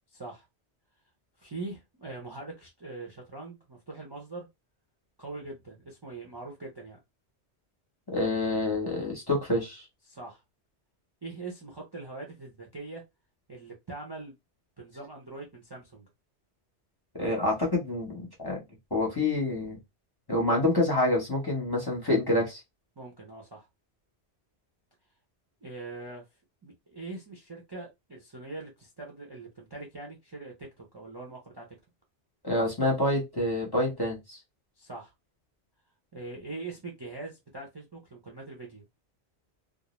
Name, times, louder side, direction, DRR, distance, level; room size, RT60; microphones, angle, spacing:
voice 1, 0.1-0.4 1.4-4.5 5.2-7.0 10.1-10.4 11.2-13.0 13.5-14.3 14.8-16.0 23.0-23.7 25.6-26.3 26.6-31.7 34.8-35.1 36.1-38.9, right 3 dB, 30° right, 0.5 m, -42 dB
voice 2, 8.1-9.8 17.2-18.6 18.9-19.8 20.3-22.6 32.4-34.4, left 2 dB, 25° left, 0.7 m, -27 dB
2.4 x 2.0 x 3.0 m
omnidirectional pair, 1.1 m